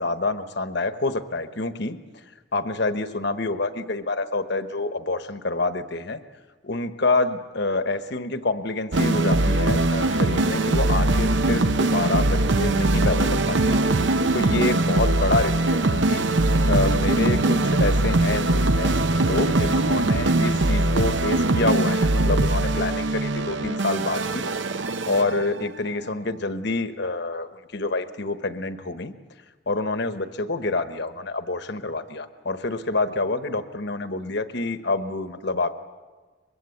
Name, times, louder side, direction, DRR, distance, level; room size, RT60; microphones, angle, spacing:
voice 1, 0.0-2.0 2.5-6.2 6.6-16.2 16.6-24.5 25.1-29.1 29.7-35.7, left 3 dB, 55° left, 10 dB, 1.1 m, -27 dB
sound 1, 8.9-25.7, right 2 dB, 60° right, 0.8 m, -21 dB
23.5 x 22.0 x 8.5 m, 1.4 s
head